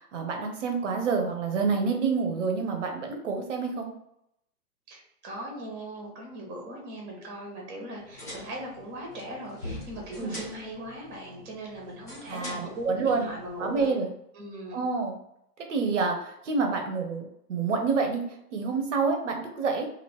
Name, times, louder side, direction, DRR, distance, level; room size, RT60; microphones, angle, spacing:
voice 1, 0.1-3.9 10.2-10.4 12.3-13.3 13.6-14.1 14.7-15.2 15.7-18.2 18.5-19.9, right 4 dB, 50° right, 3 dB, 1.0 m, -28 dB
voice 2, 4.9-13.9 14.3-14.8, equal, 20° right, -1 dB, 1.2 m, -39 dB
sound 1, 7.9-13.9, left 1 dB, 15° left, 0.4 m, -44 dB
2.9 x 2.8 x 4.4 m, 0.78 s
figure-of-eight pair, 115°, 47 cm